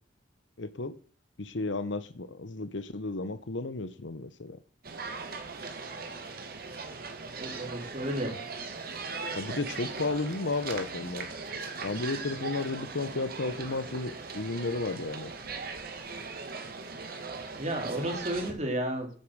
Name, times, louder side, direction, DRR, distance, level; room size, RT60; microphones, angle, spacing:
voice 1, 0.6-0.9 1.4-4.6 9.3-11.3 11.8-15.3, left 3 dB, 80° left, 1.0 m, -33 dB
sound 1, 4.8-18.5, right 4 dB, 55° right, 1.9 m, -39 dB
voice 2, 7.4-8.4 17.6-19.1, right 1 dB, 40° right, 3.5 m, -32 dB
9.9 x 8.7 x 6.4 m
head